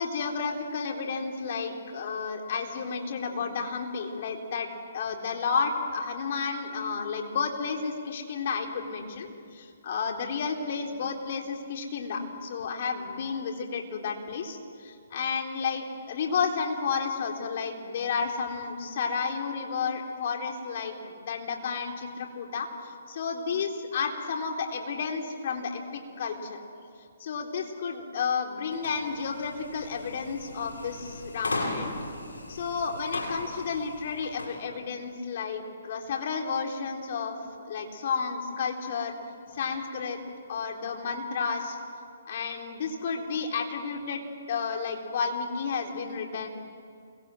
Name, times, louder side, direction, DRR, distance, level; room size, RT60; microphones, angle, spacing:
voice 1, 0.0-4.7 4.9-26.6 27.2-31.9 32.5-39.1 39.5-40.2 40.5-41.8 42.3-44.2 44.5-46.5, left 5 dB, 50° left, 3 dB, 3.8 m, -32 dB
sound 1, 28.7-34.6, left 2 dB, 85° left, 7.1 m, -37 dB
29.0 x 23.0 x 7.8 m, 2.3 s
hypercardioid pair, 140°, 0 cm